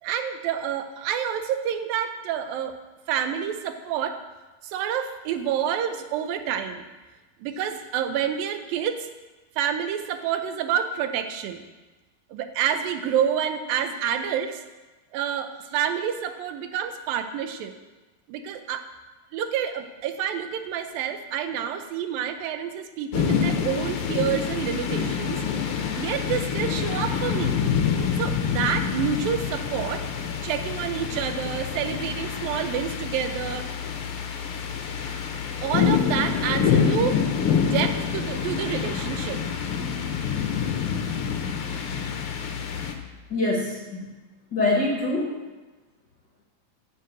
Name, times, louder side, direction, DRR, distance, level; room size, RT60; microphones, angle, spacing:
voice 1, 0.0-2.8 3.1-4.2 4.6-6.9 7.4-9.1 9.6-11.7 12.3-14.6 15.1-17.7 18.3-18.9 19.3-25.4 26.0-27.6 28.2-30.0 30.4-33.7 35.6-37.2 37.6-39.4, right 9 dB, 85° right, 8 dB, 2.6 m, -28 dB
sound 1, 23.1-42.9, left 7 dB, 70° left, 1.3 m, -27 dB
voice 2, 43.3-44.1 44.5-45.4, left 2 dB, 55° left, -1 dB, 1.2 m, -25 dB
10.5 x 6.7 x 7.8 m, 1.2 s
omnidirectional pair, 4.0 m